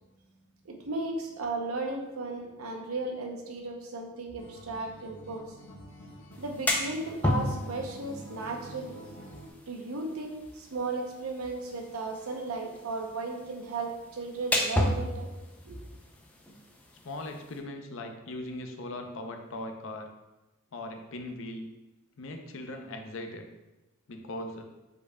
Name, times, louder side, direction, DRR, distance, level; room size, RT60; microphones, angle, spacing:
voice 1, 0.6-5.4 6.4-9.0 9.7-15.3 15.7-15.8, right 2 dB, 80° right, 2 dB, 0.7 m, -35 dB
Acoustic guitar, 4.4-9.5, equal, 80° left, 1.1 m, -48 dB
sound 1, 6.3-17.6, left 1 dB, 5° left, 0.4 m, -35 dB
voice 2, 17.0-20.1 20.7-21.7 22.2-23.5 24.1-24.6, left 1 dB, 60° left, 4 dB, 0.6 m, -39 dB
5.0 x 4.4 x 2.2 m, 1.0 s
head